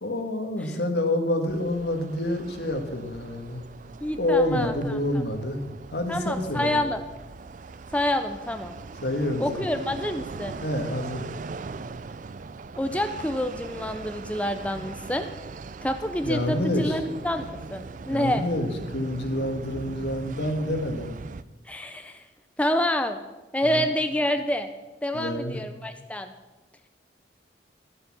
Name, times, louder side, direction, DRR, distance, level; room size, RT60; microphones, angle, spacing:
voice 1, 0.0-3.6 4.2-5.6 5.9-6.8 9.0-9.6 10.6-11.3 16.2-17.0 18.1-21.1 23.6-23.9 25.1-25.6, left 1 dB, 65° left, 5 dB, 1.8 m, -27 dB
sound 1, 1.5-21.4, right 4 dB, 45° right, 0.4 m, -40 dB
voice 2, 4.0-4.7 6.1-7.0 7.9-8.7 9.4-10.6 12.8-15.3 15.8-18.4 21.7-22.2 22.6-23.2 23.5-24.7 25.0-26.3, left 1 dB, 10° left, 7 dB, 0.5 m, -27 dB
12.5 x 11.5 x 6.2 m, 1.1 s
head